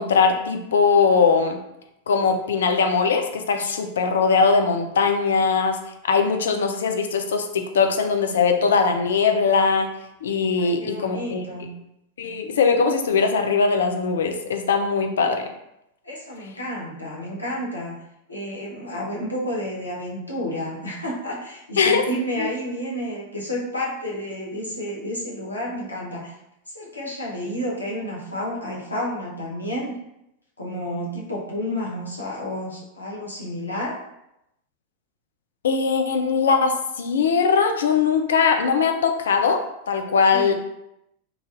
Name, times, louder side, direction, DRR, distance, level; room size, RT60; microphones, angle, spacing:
voice 1, 0.0-1.6 2.1-5.8 6.0-9.9 10.2-11.4 12.2-15.5 21.8-22.0 22.4-22.5 35.6-39.6 39.9-40.5, left 5 dB, 65° left, 5 dB, 0.4 m, -20 dB
voice 2, 10.5-11.7 16.0-18.0 18.3-26.4 26.7-30.0 30.6-34.0 40.3-40.5, equal, 80° left, -4 dB, 0.8 m, -30 dB
3.2 x 2.5 x 2.4 m, 0.84 s
figure-of-eight pair, 90°, 0 cm